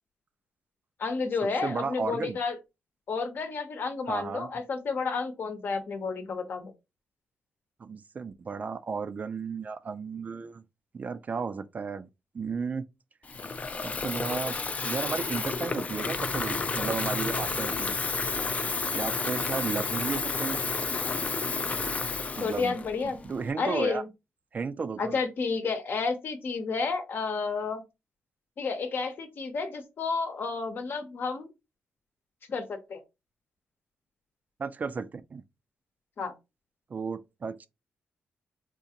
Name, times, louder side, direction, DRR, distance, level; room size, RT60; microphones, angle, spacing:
voice 1, 1.0-2.5 3.1-6.7 22.4-23.2 23.6-24.1 25.0-27.8 28.6-31.5 32.5-33.0 36.2-36.3, left 4 dB, 60° left, 0.8 m, -31 dB
voice 2, 1.6-2.4 4.1-4.5 7.8-10.6 10.9-12.1 12.3-12.8 13.8-14.5 14.8-18.0 18.9-20.6 22.4-24.0 24.5-25.2 34.6-35.4 36.9-37.7, right 5 dB, 40° right, 0.3 m, -34 dB
Water tap faucet / Fill (with liquid), 13.2-23.5, left 4 dB, 35° left, 0.4 m, -31 dB
3.8 x 2.4 x 2.8 m
cardioid pair, 70°, 4 cm